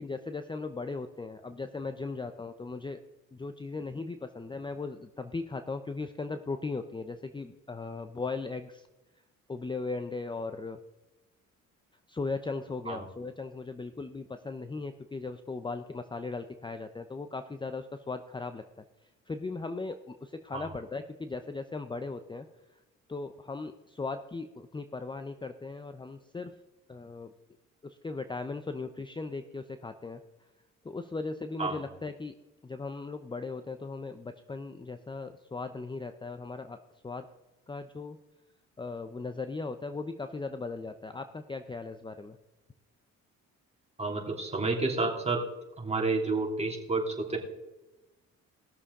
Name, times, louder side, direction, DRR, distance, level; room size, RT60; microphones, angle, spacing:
voice 1, 0.0-3.0 3.3-8.9 9.5-10.8 12.1-18.8 19.3-22.5 23.1-26.5 26.9-27.3 27.8-30.2 30.8-32.3 32.6-37.2 37.7-38.2 38.8-42.4, left 3 dB, 15° left, 9 dB, 0.6 m, -38 dB
voice 2, 44.0-45.4 45.8-47.4, right 3 dB, 20° right, 0 dB, 2.9 m, -30 dB
19.5 x 6.9 x 3.7 m, 1.0 s
cardioid pair, 90°, 30 cm